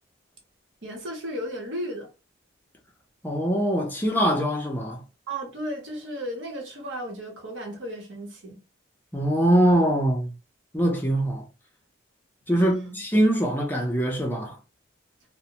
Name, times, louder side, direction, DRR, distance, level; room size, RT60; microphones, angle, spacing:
voice 1, 0.8-2.1 5.3-8.6 9.5-9.7 12.5-13.0, equal, 70° right, 0.9 m, -34 dB
voice 2, 3.2-5.0 9.1-10.3 10.7-11.4 12.5-14.6, right 1 dB, 10° left, 0.5 m, -23 dB
2.7 x 2.1 x 2.8 m
head